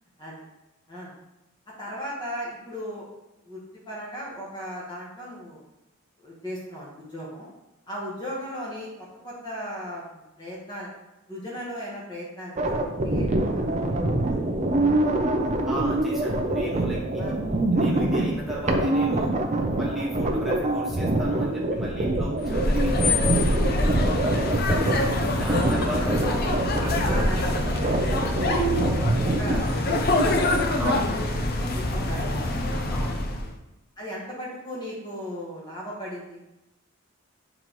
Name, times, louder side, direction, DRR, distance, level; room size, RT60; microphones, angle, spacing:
voice 1, 1.8-3.0 3.5-5.6 6.2-7.5 7.9-10.9 11.3-13.6 14.3-14.4 17.2-17.3 23.7-24.2 26.0-28.6 29.3-30.6 31.7-32.6 34.0-36.4, equal, 20° left, -6 dB, 1.2 m, -37 dB
sound 1, 12.6-29.6, right 2 dB, 35° right, 0.6 m, -25 dB
sound 2, 15.4-32.2, left 1 dB, 80° left, 0.9 m, -46 dB
voice 2, 15.7-17.3 17.7-19.4 19.7-23.2 25.3-26.2 30.8-31.1 32.9-33.2, right 1 dB, ahead, -7 dB, 1.5 m, -35 dB
sound 3, 22.4-33.5, left 2 dB, 45° left, 0.7 m, -25 dB
8.6 x 4.0 x 3.1 m, 0.98 s
head